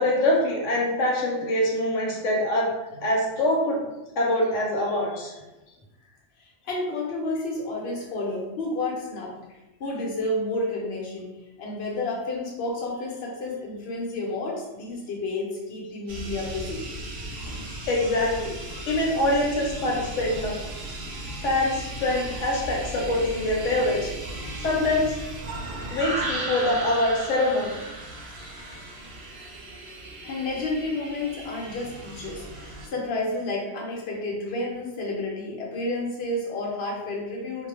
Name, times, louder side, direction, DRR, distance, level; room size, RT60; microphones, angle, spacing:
voice 1, 0.0-2.7 3.0-3.8 4.2-5.3 17.4-21.0 21.4-25.3 25.8-27.9 28.4-28.8, left 1 dB, 85° left, -2 dB, 1.0 m, -25 dB
voice 2, 6.4-9.4 9.8-11.3 11.6-16.9 30.2-37.7, left 2 dB, 65° left, -2 dB, 0.9 m, -30 dB
sound 1, 16.1-32.9, right 2 dB, 65° right, 0.8 m, -36 dB
2.2 x 2.1 x 2.9 m, 1.0 s
omnidirectional pair, 1.2 m